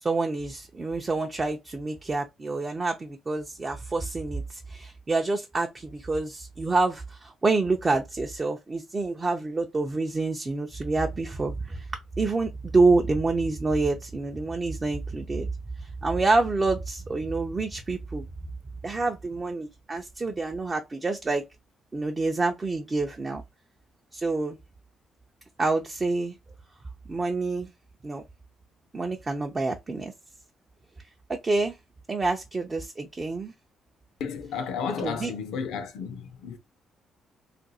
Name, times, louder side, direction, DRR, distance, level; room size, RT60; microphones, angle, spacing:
voice 1, 0.0-11.9 12.2-15.5 15.8-18.2 18.8-21.4 21.9-23.4 24.1-24.6 25.6-26.4 27.1-27.7 28.0-28.2 28.9-30.1 31.3-31.7 32.1-33.5 35.0-35.3, right 3 dB, 30° right, 0.5 m, -27 dB
voice 2, 34.2-36.6, left 6 dB, 85° left, 0.6 m, -33 dB
2.5 x 2.3 x 4.0 m
cardioid pair, 90°, 0 cm